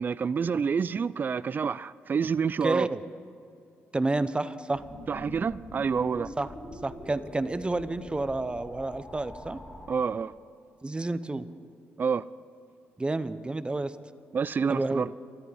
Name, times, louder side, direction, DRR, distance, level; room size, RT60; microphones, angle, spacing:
voice 1, 0.0-2.9 5.1-6.3 9.9-10.3 12.0-12.2 14.3-15.1, right 6 dB, 40° right, 0.3 m, -28 dB
voice 2, 2.6-3.0 3.9-4.8 6.4-6.5 6.8-9.6 10.8-11.5 13.0-14.0 14.7-15.1, right 2 dB, 20° right, 0.8 m, -30 dB
sound 1, 4.7-10.0, left 1 dB, 15° left, 4.9 m, -44 dB
25.0 x 13.5 x 4.2 m
supercardioid pair, 65°, 5 cm